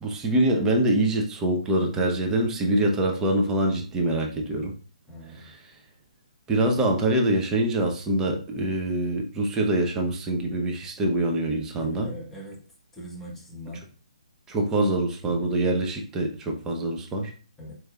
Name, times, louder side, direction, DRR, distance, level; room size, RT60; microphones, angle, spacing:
voice 1, 0.0-4.7 5.4-5.5 6.5-12.1 14.5-17.3, right 1 dB, 10° right, 2 dB, 0.7 m, -24 dB
voice 2, 5.1-5.5 11.7-12.6 12.9-13.9 17.6-17.7, equal, 10° left, -2 dB, 1.2 m, -41 dB
4.6 x 4.3 x 2.4 m, 0.39 s
figure-of-eight pair, 135°, 4 cm